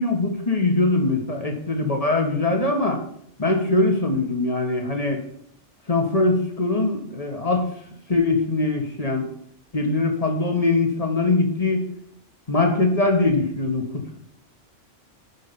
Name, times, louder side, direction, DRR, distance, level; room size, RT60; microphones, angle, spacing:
voice 1, 0.0-3.0 3.4-5.2 5.9-7.7 8.1-9.3 9.7-11.9 12.5-14.2, left 2 dB, 30° left, 3 dB, 1.9 m, -22 dB
10.5 x 5.3 x 7.1 m, 0.69 s
omnidirectional pair, 1.3 m